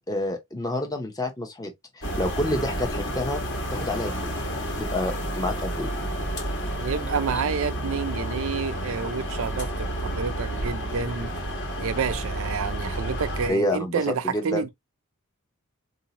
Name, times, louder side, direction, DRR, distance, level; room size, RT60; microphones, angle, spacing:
voice 1, 0.1-3.4 3.7-4.4 4.8-5.9 13.5-14.6, left 1 dB, 15° left, 0.7 m, -28 dB
sound 1, 2.0-13.5, right 1 dB, 55° left, 1.3 m, -30 dB
voice 2, 6.8-11.3 11.8-14.7, right 5 dB, 65° right, 0.5 m, -29 dB
3.9 x 2.8 x 2.8 m
head